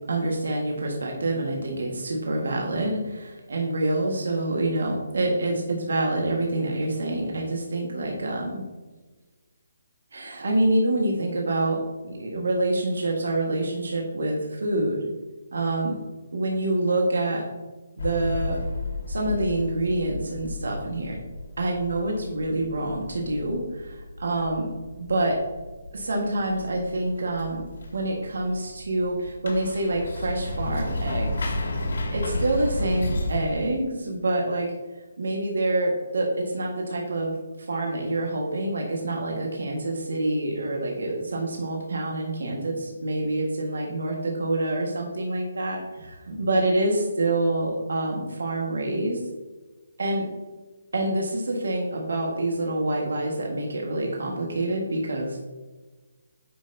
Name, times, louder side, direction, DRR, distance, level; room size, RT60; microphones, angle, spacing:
voice 1, 0.1-8.6 10.1-15.1 15.5-16.0 16.3-17.4 18.0-18.6 19.1-21.2 21.6-24.7 25.0-25.4 25.9-27.6 27.9-31.5 32.1-34.7 35.2-49.2 50.0-50.3 50.9-55.4, right 2 dB, 80° right, 0 dB, 1.6 m, -26 dB
sound 1, 18.0-33.6, left 1 dB, 65° left, 2.2 m, -33 dB
9.5 x 5.6 x 2.7 m, 1.2 s
hypercardioid pair, 175°, 0 cm